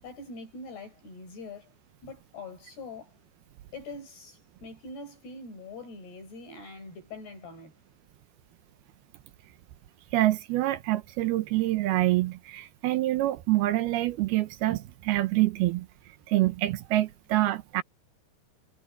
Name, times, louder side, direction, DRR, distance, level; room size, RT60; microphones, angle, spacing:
voice 1, 0.0-1.7 2.0-3.1 3.7-7.7, left 3 dB, 60° left, 7.8 m, -43 dB
voice 2, 10.1-15.9 16.3-17.8, right 16 dB, 75° right, 2.4 m, -26 dB
omnidirectional pair, 5.2 m